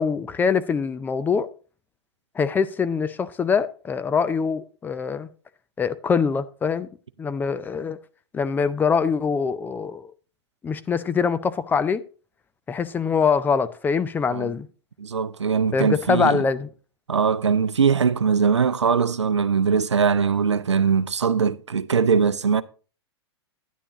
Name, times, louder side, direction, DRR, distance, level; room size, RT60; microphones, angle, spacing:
voice 1, 0.0-1.5 2.4-5.3 5.8-6.9 7.2-8.0 8.3-10.1 10.6-12.0 12.7-14.7 15.7-16.7, left 5 dB, 15° left, 0.4 m, -23 dB
voice 2, 15.0-16.4 17.1-22.6, right 6 dB, 90° right, 0.5 m, -21 dB
10.0 x 9.9 x 2.9 m
hypercardioid pair, 110°, 14 cm